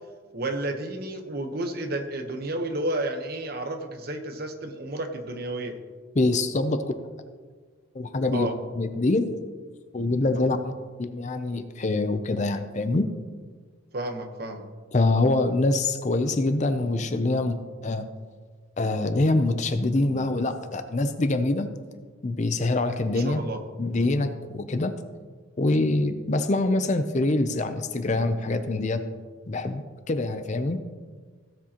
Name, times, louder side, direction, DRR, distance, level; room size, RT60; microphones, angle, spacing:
voice 1, 0.3-5.7 8.3-8.5 13.9-14.7 23.1-23.6, right 1 dB, 45° right, 5 dB, 1.0 m, -31 dB
voice 2, 6.1-7.0 7.9-9.3 9.9-13.1 14.9-17.6 17.8-18.1 18.8-21.7 22.2-23.4 23.8-24.9 25.6-29.0 29.5-30.8, left 2 dB, 35° left, 9 dB, 0.5 m, -25 dB
16.5 x 7.6 x 2.9 m, 1.5 s
head